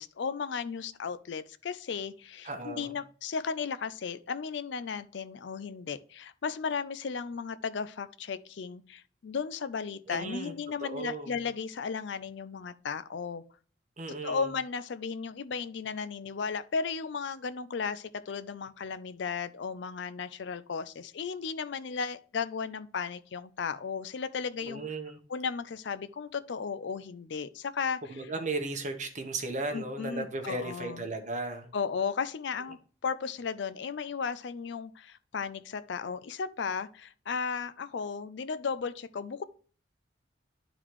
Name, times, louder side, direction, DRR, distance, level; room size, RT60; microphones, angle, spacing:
voice 1, 0.0-13.4 14.2-24.8 25.3-28.3 29.7-31.1 31.7-32.8 33.0-39.4, left 5 dB, 65° left, 0.4 m, -35 dB
voice 2, 2.4-2.9 10.1-10.5 10.8-11.4 14.0-14.4 24.6-25.2 28.1-31.7, right 2 dB, 40° right, 1.0 m, -35 dB
11.5 x 3.9 x 3.1 m
head